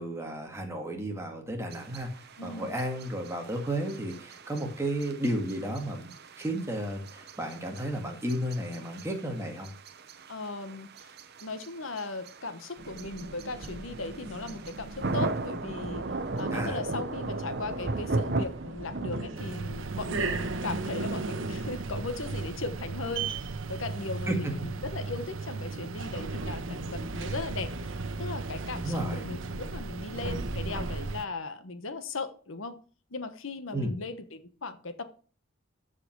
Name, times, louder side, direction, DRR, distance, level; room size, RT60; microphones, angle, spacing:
voice 1, 0.0-2.1 2.4-6.1 6.4-9.7 16.5-16.8 24.3-24.5 28.8-29.2 33.7-33.9, right 1 dB, 15° right, 2.0 m, -33 dB
sound 1, 1.7-19.4, right 2 dB, 55° right, 0.8 m, -37 dB
voice 2, 2.4-2.7 10.3-11.1 11.4-16.1 16.3-32.8 33.1-35.0, left 3 dB, 80° left, 1.1 m, -38 dB
sound 2, 12.8-31.1, right 2 dB, 70° right, 1.2 m, -38 dB
sound 3, 19.4-31.3, right 4 dB, 85° right, 0.6 m, -38 dB
14.0 x 4.9 x 4.6 m
head